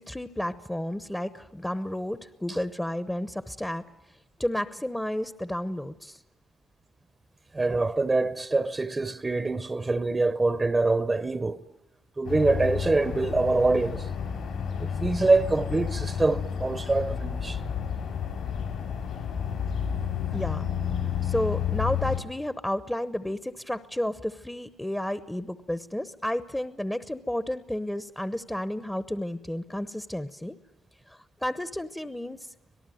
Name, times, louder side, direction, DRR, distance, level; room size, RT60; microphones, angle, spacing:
voice 1, 0.0-3.8 4.4-6.2 20.3-20.7 21.2-30.6 31.1-32.5, left 1 dB, 5° left, 0.9 m, -32 dB
voice 2, 7.5-11.6 12.2-14.1 14.8-17.6, right 3 dB, 20° right, 0.8 m, -25 dB
sound 1, 12.2-22.2, left 8 dB, 75° left, 5.3 m, -31 dB
26.0 x 18.5 x 9.3 m
cardioid pair, 90°, 0 cm